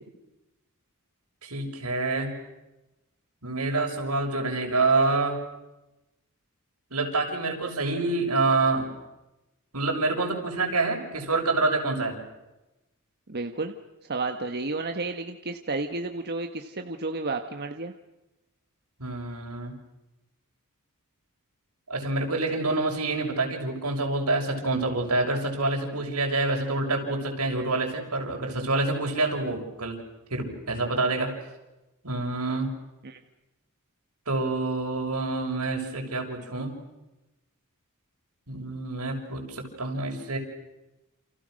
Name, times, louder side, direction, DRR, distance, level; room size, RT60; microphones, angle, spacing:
voice 1, 1.4-2.3 3.4-5.4 6.9-8.9 9.7-12.2 19.0-19.7 21.9-30.0 30.3-31.3 32.0-32.7 34.3-36.7 38.5-40.4, right 3 dB, 85° right, 2 dB, 6.6 m, -27 dB
voice 2, 13.3-13.7 14.1-17.9 33.0-33.2, right 3 dB, 50° right, 5 dB, 1.5 m, -31 dB
29.5 x 29.0 x 6.6 m, 0.99 s
head